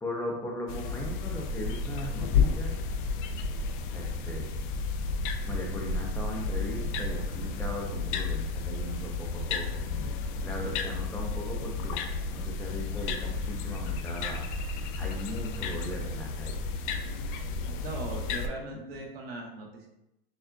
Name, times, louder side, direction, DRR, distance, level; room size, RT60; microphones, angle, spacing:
voice 1, 0.0-2.7 3.9-4.9 5.4-12.0 12.3-14.4 15.0-16.6 18.7-18.8, left 1 dB, 10° left, -1 dB, 0.6 m, -38 dB
sound 1, 0.7-18.5, left 4 dB, 55° left, 0.5 m, -32 dB
voice 2, 17.6-19.9, right 3 dB, 85° right, 0 dB, 1.1 m, -39 dB
6.3 x 2.3 x 2.3 m, 0.87 s
supercardioid pair, 130°, 30 cm